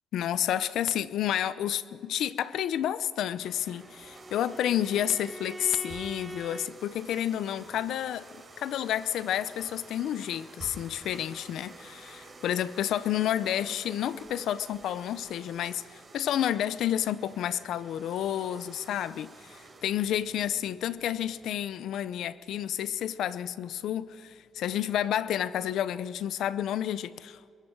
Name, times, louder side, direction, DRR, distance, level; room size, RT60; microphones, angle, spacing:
voice 1, 0.1-8.2 8.6-27.5, left 11 dB, 80° left, 0.7 m, -30 dB
Bowed string instrument, 3.2-6.7, right 1 dB, 10° right, 0.6 m, -44 dB
sound 1, 3.4-21.5, right 3 dB, 30° right, 4.7 m, -51 dB
26.0 x 22.5 x 4.7 m
cardioid pair, 90°, 0 cm